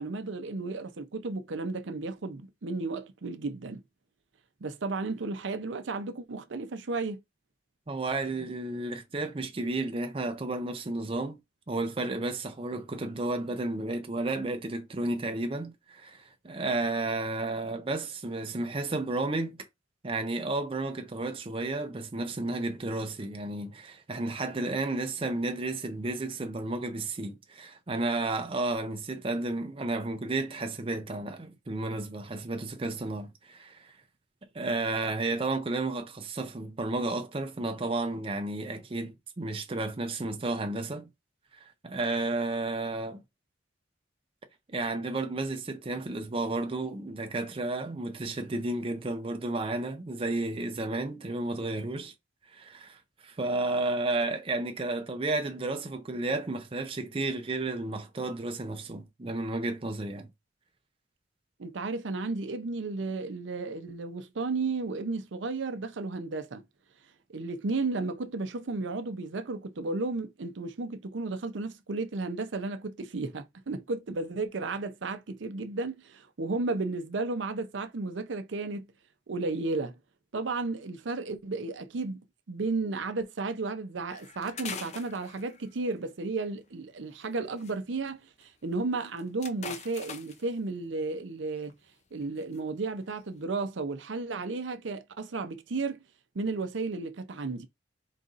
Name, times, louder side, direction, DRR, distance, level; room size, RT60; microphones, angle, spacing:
voice 1, 0.0-3.8 4.6-7.2 61.6-66.6 67.3-78.9 79.3-80.0 80.3-82.2 82.5-91.7 92.1-96.0 96.3-97.7, right 3 dB, 80° right, 0.6 m, -33 dB
voice 2, 7.9-11.4 11.7-19.6 20.0-34.0 34.5-41.1 41.5-43.2 44.7-52.1 52.5-60.3, right 2 dB, 30° right, 0.6 m, -32 dB
sound 1, 84.1-85.9 87.2-87.7 88.1-88.2 88.4-88.5 88.9-90.5 91.5-91.7 92.2-92.6 93.0-93.3, left 6 dB, 35° left, 0.5 m, -43 dB
4.0 x 2.5 x 3.9 m
head